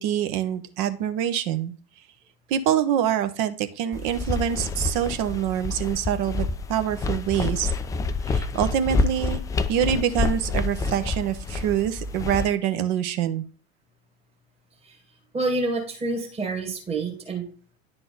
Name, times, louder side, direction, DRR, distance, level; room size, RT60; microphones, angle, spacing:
voice 1, 0.0-1.7 2.5-7.7 8.2-9.4 9.7-13.4, right 10 dB, 45° right, 10 dB, 0.8 m, -25 dB
sound 1, 3.9-12.5, left 3 dB, 10° left, 0.3 m, -28 dB
voice 2, 15.3-17.4, right 3 dB, 20° right, 1 dB, 1.7 m, -28 dB
10.5 x 3.9 x 3.8 m, 0.41 s
figure-of-eight pair, 75°, 32 cm